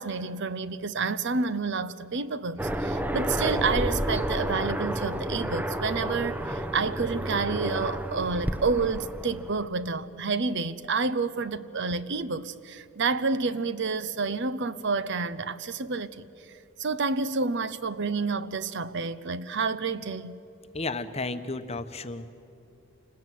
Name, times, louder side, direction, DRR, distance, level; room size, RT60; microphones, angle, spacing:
voice 1, 0.0-16.3 16.8-20.4, right 4 dB, 55° right, 0.7 m, -29 dB
Aircraft, 2.6-9.7, right 1 dB, 10° right, 0.8 m, -30 dB
voice 2, 20.7-22.3, left 3 dB, 30° left, 1.0 m, -33 dB
28.5 x 20.0 x 9.3 m
head